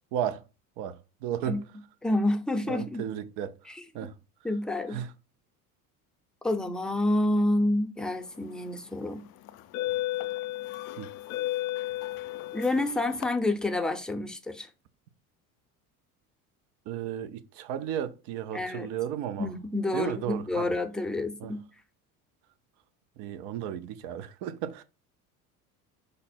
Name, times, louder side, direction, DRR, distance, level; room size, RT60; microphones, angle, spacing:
voice 1, 0.1-0.4 0.8-1.6 2.7-3.5 3.9-4.1 4.9-5.1 11.0-11.1 16.9-19.5 19.9-20.7 21.4-21.5 23.2-24.8, right 9 dB, 60° right, 0.7 m, -34 dB
voice 2, 2.0-3.0 3.7-4.1 4.4-5.0 6.4-9.2 12.5-14.7 18.5-18.9 19.4-21.6, left 2 dB, ahead, 0.6 m, -28 dB
sound 1, 8.5-8.7 9.5-13.3, left 16 dB, 45° left, 0.5 m, -33 dB
5.1 x 2.0 x 4.3 m
hypercardioid pair, 70°, 45 cm